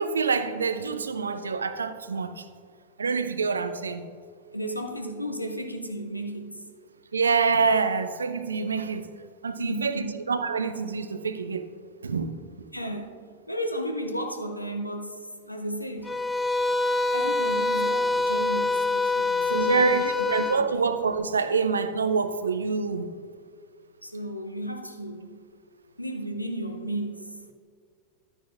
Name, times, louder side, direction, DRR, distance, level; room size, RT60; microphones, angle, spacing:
voice 1, 0.0-2.4 3.0-4.0 7.1-9.1 9.4-11.7 12.0-12.3 19.5-23.1, right 5 dB, 75° right, 12 dB, 0.5 m, -26 dB
voice 2, 4.5-6.6 9.6-10.1 12.7-13.1 13.5-16.2 17.1-20.8 24.0-25.4 26.0-27.3, equal, 90° left, 4 dB, 0.8 m, -34 dB
sound 1, 16.0-20.6, left 3 dB, 5° left, 0.4 m, -25 dB
12.0 x 9.8 x 2.5 m, 2.1 s
figure-of-eight pair, 90°, 0 cm